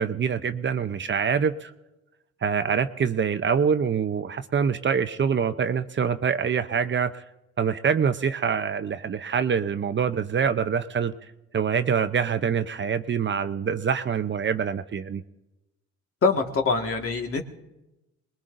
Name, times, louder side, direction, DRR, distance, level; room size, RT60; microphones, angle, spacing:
voice 1, 0.0-1.7 2.4-7.2 7.6-11.1 11.5-15.2, right 6 dB, 40° right, 10 dB, 0.7 m, -25 dB
voice 2, 16.2-17.4, left 4 dB, 50° left, 3 dB, 1.8 m, -24 dB
26.5 x 21.0 x 2.6 m, 0.98 s
cardioid pair, 90°, 30 cm